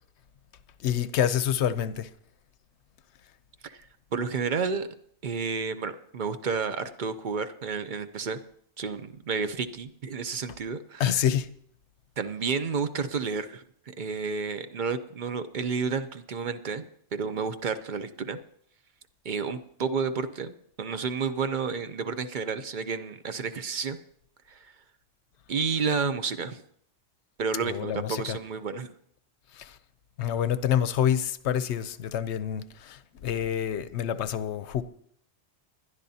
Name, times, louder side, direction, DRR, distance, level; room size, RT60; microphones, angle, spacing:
voice 1, 0.8-2.1 11.0-11.5 27.6-28.4 29.5-29.8 30.2-34.8, left 9 dB, 65° left, 0.9 m, -27 dB
voice 2, 4.1-4.9 5.2-8.4 8.8-11.2 12.2-16.8 17.1-18.4 19.2-24.0 24.5-24.6 25.5-26.6 27.4-28.9, right 5 dB, 50° right, 0.7 m, -31 dB
20.5 x 12.0 x 2.8 m
omnidirectional pair, 1.3 m